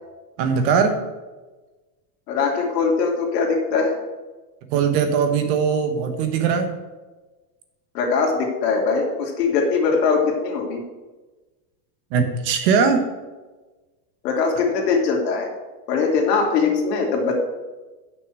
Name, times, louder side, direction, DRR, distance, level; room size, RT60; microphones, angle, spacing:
voice 1, 0.4-1.0 4.7-6.7 12.1-13.0, right 6 dB, 40° right, 6 dB, 1.2 m, -20 dB
voice 2, 2.3-4.0 7.9-10.8 14.2-15.5 15.9-17.3, left 4 dB, 85° left, 0 dB, 2.8 m, -21 dB
7.0 x 6.2 x 7.5 m, 1.2 s
supercardioid pair, 175°, 47 cm